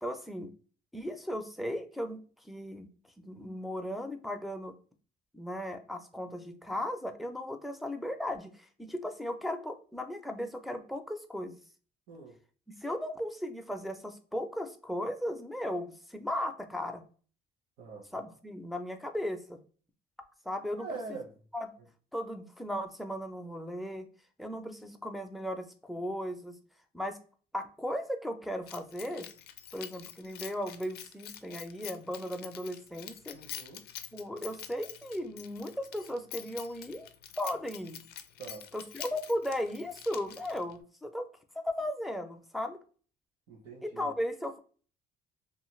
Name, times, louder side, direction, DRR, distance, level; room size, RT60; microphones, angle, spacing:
voice 1, 0.0-0.5 0.9-2.9 3.2-4.7 5.3-11.6 12.8-17.0 18.1-19.6 20.5-21.0 21.5-21.7 22.1-24.1 24.4-26.6 26.9-27.2 27.5-29.3 29.7-33.4 34.1-37.1 37.4-38.0 38.7-41.3 41.5-42.8 43.8-44.6, left 1 dB, ahead, 5 dB, 0.4 m, -36 dB
voice 2, 20.8-21.4 33.3-33.9 38.4-38.7 43.5-44.1, right 4 dB, 70° right, -2 dB, 0.8 m, -43 dB
Keys jangling, 28.7-40.8, left 10 dB, 70° left, 0.4 m, -47 dB
2.6 x 2.4 x 3.0 m, 0.40 s
cardioid pair, 110°, 17 cm